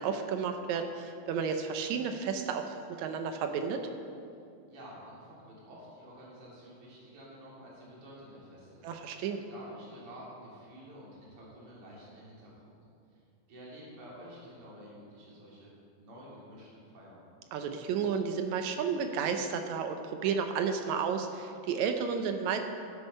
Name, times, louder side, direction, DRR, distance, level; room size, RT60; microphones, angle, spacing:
voice 1, 0.0-3.8 8.8-9.4 17.5-22.6, right 6 dB, 80° right, 6 dB, 1.6 m, -32 dB
voice 2, 4.6-8.9 9.5-12.8 13.1-13.2 13.5-17.3, equal, 40° right, -6 dB, 3.6 m, -50 dB
13.0 x 8.2 x 5.4 m, 2.5 s
omnidirectional pair, 4.0 m